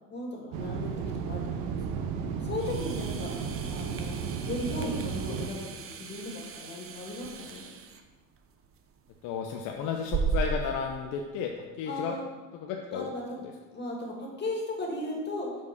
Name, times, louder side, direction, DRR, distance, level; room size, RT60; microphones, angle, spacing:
voice 1, 0.1-0.9 1.2-2.0 2.4-3.3 3.6-5.7 6.0-7.7 11.9-12.3 12.9-13.4 13.7-15.5, left 2 dB, 30° left, -1 dB, 2.3 m, -36 dB
sound 1, 0.5-5.5, right 6 dB, 70° right, 0.8 m, -33 dB
sound 2, 2.5-10.7, right 5 dB, 40° right, 0.8 m, -37 dB
voice 2, 9.2-11.5 11.8-12.2 12.6-13.1, left 7 dB, 65° left, 2 dB, 0.8 m, -33 dB
7.3 x 4.6 x 5.3 m, 1.3 s
supercardioid pair, 90°, 33 cm